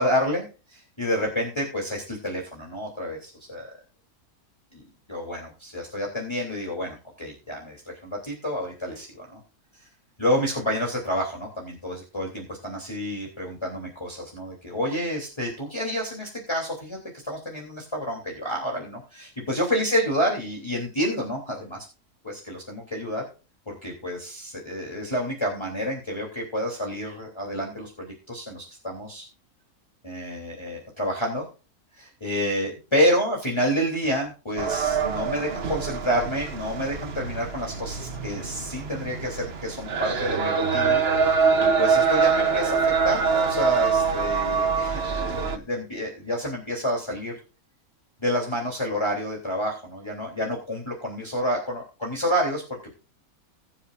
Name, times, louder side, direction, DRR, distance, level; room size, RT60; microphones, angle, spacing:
voice 1, 0.0-3.7 5.1-9.4 9.8-9.9 10.2-21.8 22.2-23.2 23.7-29.3 30.0-31.4 32.0-41.0 41.4-47.3 48.2-52.6, equal, 20° left, -2 dB, 3.3 m, -29 dB
sound 1, 34.6-45.6, right 5 dB, 45° right, 1.1 m, -24 dB
21.5 x 7.5 x 2.6 m, 0.32 s
omnidirectional pair, 1.6 m